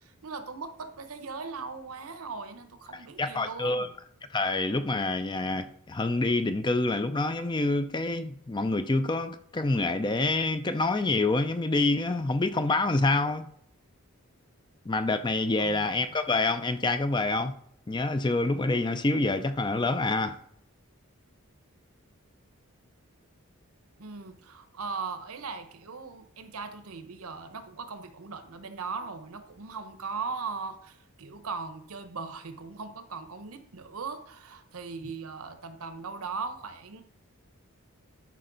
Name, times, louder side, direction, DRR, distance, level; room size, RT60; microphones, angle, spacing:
voice 1, 0.0-3.9 15.6-16.2 24.0-37.0, right 4 dB, 75° right, 0.9 m, -39 dB
voice 2, 3.2-3.9 4.3-13.4 14.9-17.6 17.9-20.4, left 2 dB, 20° left, 0.4 m, -27 dB
12.0 x 5.2 x 3.9 m
head